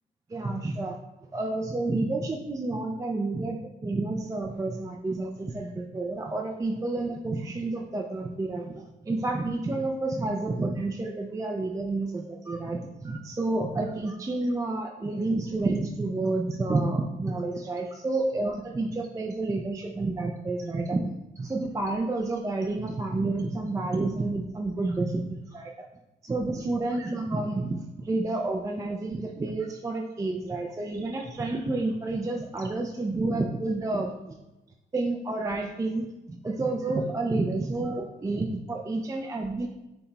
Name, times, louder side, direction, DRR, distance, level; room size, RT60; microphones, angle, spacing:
voice 1, 0.3-1.0 1.3-21.1 21.4-25.7 26.2-34.1 34.9-39.7, right 2 dB, 15° right, 2 dB, 0.4 m, -30 dB
5.7 x 2.2 x 4.0 m, 0.99 s
cardioid pair, 90°, 20 cm